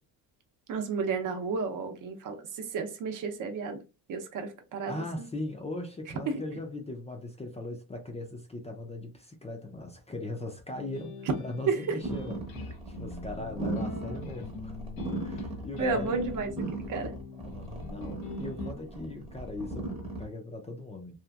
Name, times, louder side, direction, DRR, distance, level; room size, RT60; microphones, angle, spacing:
voice 1, 0.7-3.8 4.1-5.0 6.3-6.4 11.7-11.9 15.8-16.5 16.9-17.1, right 5 dB, 55° right, 0.7 m, -31 dB
voice 2, 4.7-14.8 15.2-16.2 17.4-21.1, left 2 dB, 20° left, 0.4 m, -39 dB
sound 1, 10.7-18.7, left 5 dB, 85° left, 0.7 m, -43 dB
sound 2, 12.0-20.3, right 2 dB, 15° right, 0.8 m, -37 dB
2.8 x 2.5 x 2.3 m
cardioid pair, 125°, 37 cm